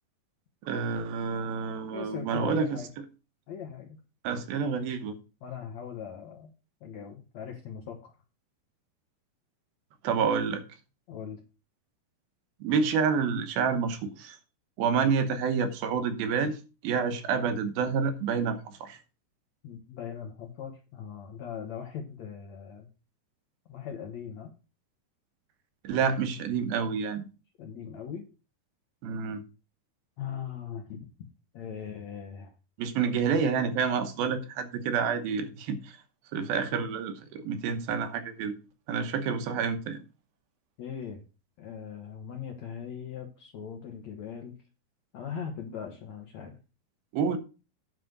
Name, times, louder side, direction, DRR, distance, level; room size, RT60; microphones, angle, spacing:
voice 1, 0.6-3.1 4.2-5.1 10.0-10.6 12.6-14.4 14.8-19.0 25.8-27.2 29.0-29.4 32.8-36.0 36.3-38.6 38.9-40.0 47.1-47.4, right 6 dB, 75° right, 2.8 m, -28 dB
voice 2, 1.9-2.9 3.5-4.0 5.4-6.5 6.8-8.1 11.1-11.4 19.6-22.9 23.7-24.5 27.6-28.3 30.2-31.1 31.5-32.5 40.8-41.2 41.6-44.6 45.1-46.6, left 7 dB, 65° left, 1.8 m, -40 dB
9.4 x 5.7 x 6.6 m
omnidirectional pair, 4.5 m